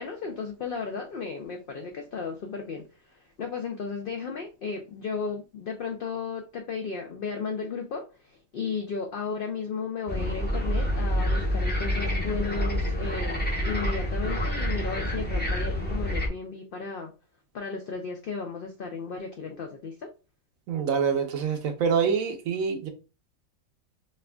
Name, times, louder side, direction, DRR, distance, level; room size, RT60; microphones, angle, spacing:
voice 1, 0.0-17.1 17.5-20.1, left 5 dB, 80° left, 0.4 m, -34 dB
sound 1, 10.1-16.3, equal, 10° left, 0.5 m, -27 dB
voice 2, 20.7-22.9, right 6 dB, 75° right, 1.1 m, -26 dB
4.2 x 2.4 x 2.2 m
omnidirectional pair, 1.5 m